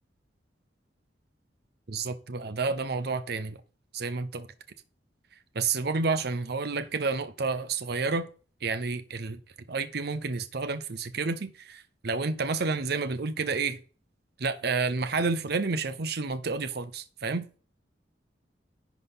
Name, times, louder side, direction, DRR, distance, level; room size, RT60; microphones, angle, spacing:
voice 1, 1.9-3.6 3.9-4.5 5.5-8.3 8.6-9.4 9.7-13.8 14.4-17.6, right 4 dB, 60° right, 0.7 m, -30 dB
11.0 x 4.1 x 5.6 m
head